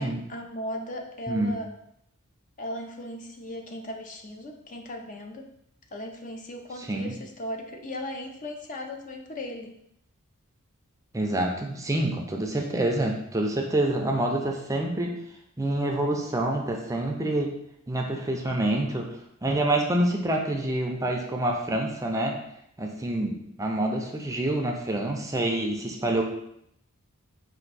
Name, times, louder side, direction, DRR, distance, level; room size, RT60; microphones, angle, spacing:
voice 1, 0.0-1.7 2.6-5.5 5.9-9.7, left 1 dB, 35° left, 3 dB, 0.5 m, -37 dB
voice 2, 6.8-7.1 11.1-15.1 15.6-17.5 17.9-19.1 19.4-22.3 22.8-26.2, right 1 dB, 15° right, 1 dB, 0.5 m, -27 dB
4.3 x 2.6 x 4.0 m, 0.75 s
head